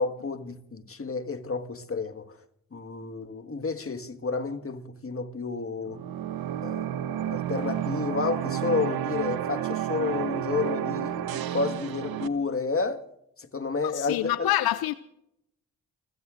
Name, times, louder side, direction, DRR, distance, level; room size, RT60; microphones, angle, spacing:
voice 1, 0.0-2.4 2.7-6.0 6.6-13.0 13.4-14.5, left 4 dB, 40° left, 1.7 m, -31 dB
sound 1, 5.9-12.3, right 11 dB, 75° right, 0.8 m, -31 dB
voice 2, 13.9-14.9, left 14 dB, 80° left, 0.5 m, -26 dB
29.5 x 16.5 x 2.5 m
supercardioid pair, 45°, 36 cm